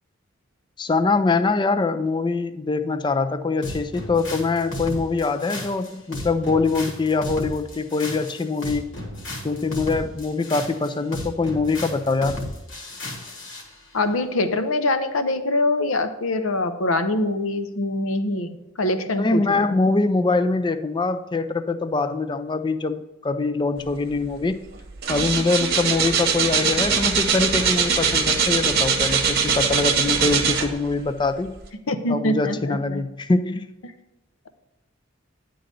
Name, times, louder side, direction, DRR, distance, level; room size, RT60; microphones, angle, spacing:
voice 1, 0.8-8.9 9.4-12.4 19.2-24.6 25.1-31.5 32.1-33.7, left 3 dB, 20° left, 10 dB, 0.4 m, -23 dB
sound 1, 3.6-13.7, left 1 dB, 60° left, 1.6 m, -34 dB
voice 2, 13.9-19.8 31.9-33.0 33.8-33.9, left 2 dB, 75° left, 8 dB, 0.7 m, -24 dB
sound 2, 24.2-24.4 24.7-31.0 31.6-31.7, right 6 dB, 50° right, 0.9 m, -22 dB
10.5 x 3.8 x 6.7 m, 0.96 s
head